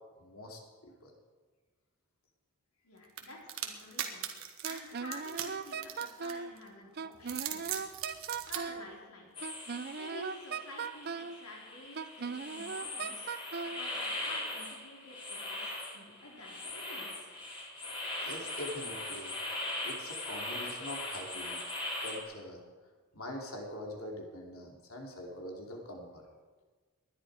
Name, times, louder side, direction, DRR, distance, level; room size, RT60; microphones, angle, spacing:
voice 1, 0.2-1.1 18.2-19.4 19.8-21.6 22.0-22.6 23.1-26.2, left 1 dB, 70° left, 0 dB, 2.9 m, -43 dB
voice 2, 2.8-4.3 4.6-7.9 8.5-9.3 9.9-13.3 13.6-15.7 15.9-17.3, left 2 dB, 85° left, -2 dB, 4.2 m, -50 dB
sound 1, 3.2-6.6 7.1-8.6, right 10 dB, 65° right, 1.5 m, -39 dB
Wind instrument woodwind instrument, 4.6-6.5 7.0-8.9 9.4-11.4 12.0-13.8, right 5 dB, 45° right, 0.5 m, -38 dB
sound 2, 9.3-22.2, left 2 dB, 25° left, 3.7 m, -40 dB
20.0 x 11.5 x 4.8 m, 1.4 s
head